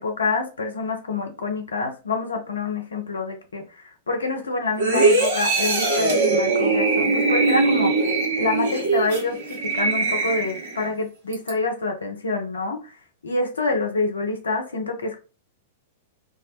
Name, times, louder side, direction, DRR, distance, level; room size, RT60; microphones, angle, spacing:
voice 1, 0.0-7.9 8.4-13.0 13.2-15.2, left 3 dB, 75° left, 0.5 m, -27 dB
sound 1, 4.8-10.9 11.3-11.5, right 3 dB, 60° right, 1.0 m, -21 dB
2.3 x 2.1 x 2.7 m
figure-of-eight pair, 100°, 0 cm